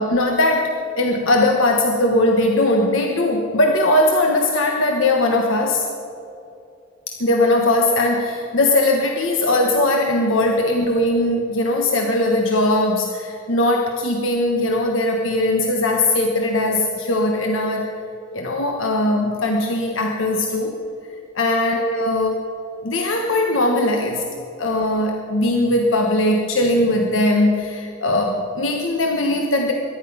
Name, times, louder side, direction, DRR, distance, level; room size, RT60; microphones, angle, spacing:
voice 1, 0.0-5.9 7.1-17.9 18.3-20.8 21.3-22.5 22.8-24.2 24.6-29.7, left 1 dB, 75° left, 2 dB, 1.3 m, -19 dB
23.0 x 10.5 x 5.6 m, 2.6 s
head